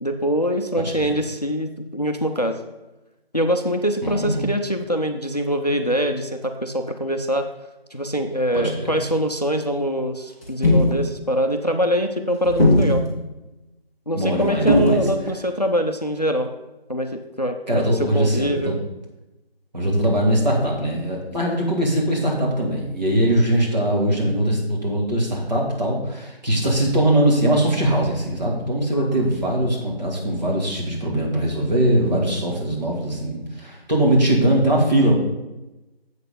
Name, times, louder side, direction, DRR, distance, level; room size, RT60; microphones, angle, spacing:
voice 1, 0.0-2.6 3.3-7.5 7.9-13.0 14.1-16.5 16.9-18.8 28.9-29.3, equal, 40° left, 6 dB, 0.5 m, -24 dB
voice 2, 4.0-4.5 8.5-9.0 14.1-15.0 17.7-18.7 19.7-35.1, right 1 dB, 45° right, -3 dB, 2.3 m, -21 dB
sound 1, 10.4-11.0 12.4-13.1 14.7-15.1, left 1 dB, 15° right, 1.2 m, -17 dB
7.7 x 6.6 x 5.1 m, 1.0 s
figure-of-eight pair, 175°, 31 cm